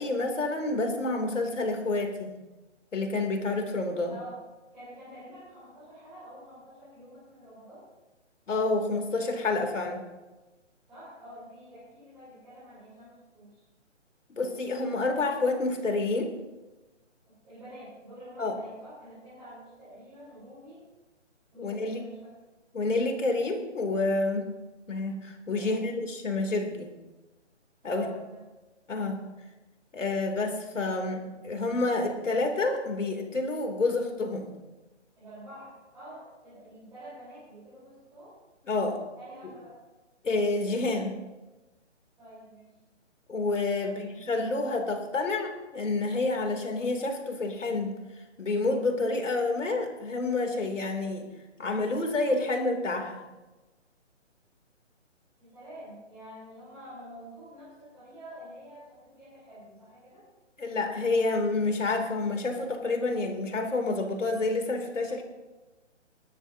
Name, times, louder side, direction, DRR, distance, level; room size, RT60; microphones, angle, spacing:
voice 1, 0.0-2.3 2.9-4.2 8.5-10.0 14.3-16.3 18.4-18.5 21.6-22.0 22.7-24.5 24.9-26.9 27.8-28.1 28.9-29.2 29.9-34.5 38.7-39.0 40.2-41.1 43.3-47.9 48.4-51.3 51.6-53.2 60.6-65.2, left 3 dB, 80° left, 4 dB, 3.0 m, -28 dB
voice 2, 4.1-4.4 4.7-7.8 10.9-13.6 17.3-20.9 21.5-22.3 25.6-25.9 27.8-28.4 35.1-38.4 39.1-39.8 42.2-42.7 43.8-44.3 55.4-60.2, equal, 5° right, -14 dB, 4.1 m, -47 dB
21.5 x 13.0 x 2.8 m, 1.1 s
hypercardioid pair, 175°, 37 cm